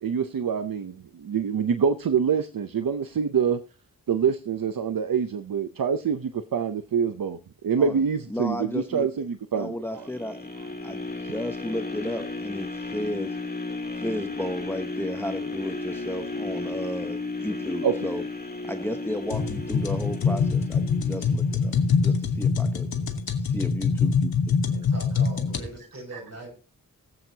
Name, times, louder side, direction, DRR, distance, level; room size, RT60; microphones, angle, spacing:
voice 1, 0.0-3.6 4.1-7.4 7.6-10.1 17.8-18.0 26.1-26.2, right 7 dB, 70° right, 9 dB, 0.7 m, -26 dB
voice 2, 8.3-9.1 9.5-13.4 14.0-18.2 18.6-22.9 23.4-24.5, left 1 dB, 5° left, 6 dB, 0.9 m, -34 dB
sound 1, 9.9-22.0 22.5-22.6, left 3 dB, 25° left, 1.9 m, -34 dB
sound 2, 19.3-25.6, left 5 dB, 85° left, 1.4 m, -24 dB
voice 3, 24.7-26.5, right 2 dB, 45° right, 1 dB, 6.1 m, -41 dB
19.5 x 7.8 x 2.8 m, 0.34 s
wide cardioid pair, 105°, 36 cm